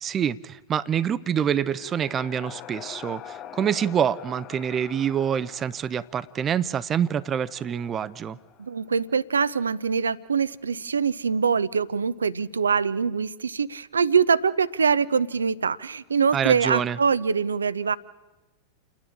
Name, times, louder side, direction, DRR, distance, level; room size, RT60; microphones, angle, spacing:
voice 1, 0.0-8.4 16.3-17.0, right 8 dB, 25° right, 18 dB, 0.6 m, -26 dB
sound 1, 1.3-9.0, left 11 dB, 35° left, 0.6 m, -45 dB
voice 2, 8.6-18.0, right 6 dB, 75° right, 19 dB, 0.6 m, -24 dB
29.5 x 10.5 x 8.6 m, 1.1 s
figure-of-eight pair, 90°, 0 cm